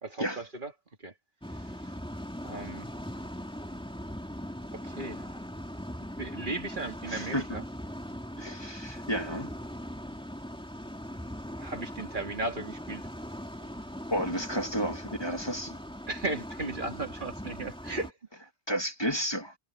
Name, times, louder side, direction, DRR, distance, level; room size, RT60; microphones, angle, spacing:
voice 1, 0.0-0.7 1.0-1.1 1.5-1.9 2.4-2.8 4.7-5.4 6.2-7.6 11.6-13.1 16.1-18.1, right 2 dB, 50° right, 2.9 m, -36 dB
sound 1, 1.4-18.1, equal, 5° left, 3.0 m, -40 dB
voice 2, 7.1-7.4 8.4-9.5 14.1-15.8 18.7-19.5, equal, 25° left, 2.5 m, -32 dB
omnidirectional pair, 1.0 m